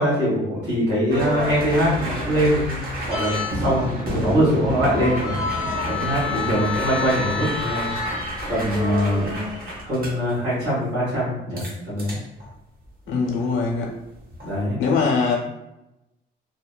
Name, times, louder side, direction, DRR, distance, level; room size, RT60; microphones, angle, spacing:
voice 1, 0.0-5.4 5.8-7.9 8.5-9.3 9.8-12.2 14.4-14.8, equal, 85° right, -9 dB, 1.4 m, -23 dB
sound 1, 1.1-10.3 11.6-11.7 12.0-12.5 13.2-13.5 14.2-14.5, left 1 dB, 45° right, 0.8 m, -28 dB
voice 2, 13.1-13.9 14.8-15.3, left 4 dB, 85° left, -1 dB, 0.6 m, -22 dB
2.8 x 2.1 x 2.2 m, 0.91 s
cardioid pair, 90°, 20 cm